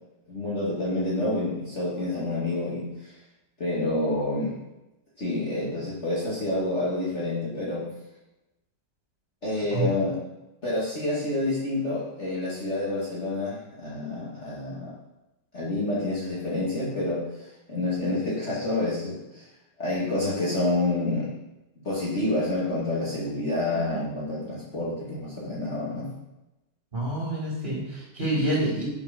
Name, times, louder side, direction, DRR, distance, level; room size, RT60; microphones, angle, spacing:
voice 1, 0.3-3.2 3.6-4.6 5.2-7.9 9.4-10.2 10.6-14.9 15.5-19.5 19.8-21.3 21.8-26.1, left 2 dB, 35° left, -7 dB, 2.3 m, -28 dB
voice 2, 26.9-28.8, right 1 dB, 30° right, -6 dB, 3.9 m, -27 dB
7.7 x 7.1 x 5.8 m, 0.97 s
omnidirectional pair, 2.2 m